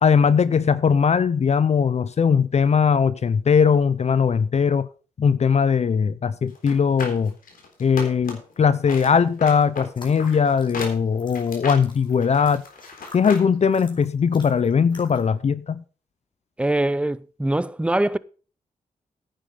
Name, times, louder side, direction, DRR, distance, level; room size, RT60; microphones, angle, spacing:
voice 1, 0.0-4.9 5.2-7.3 7.8-12.6 13.1-15.8, left 6 dB, 50° left, 0.6 m, -20 dB
sound 1, 6.6-8.5 8.8-13.5 13.8-13.9, left 4 dB, 90° left, 3.7 m, -36 dB
sound 2, 9.9-15.4, left 3 dB, 35° left, 4.0 m, -48 dB
voice 2, 16.6-18.2, right 1 dB, 10° right, 0.6 m, -23 dB
10.0 x 9.0 x 5.5 m
cardioid pair, 75°, 14 cm